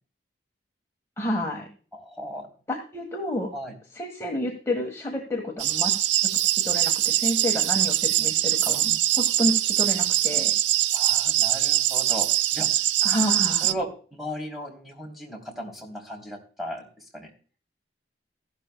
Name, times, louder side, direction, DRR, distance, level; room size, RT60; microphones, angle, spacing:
voice 1, 1.2-1.7 2.7-3.5 3.9-5.9 6.4-10.5 13.0-13.7, left 1 dB, 15° left, 0 dB, 1.5 m, -30 dB
voice 2, 1.9-2.5 3.5-3.7 10.9-12.3 12.5-12.7 13.6-16.8 17.1-17.3, equal, ahead, 0 dB, 3.2 m, -36 dB
sound 1, 5.6-13.7, right 12 dB, 85° right, 0.4 m, -23 dB
15.0 x 12.0 x 2.2 m, 0.40 s
head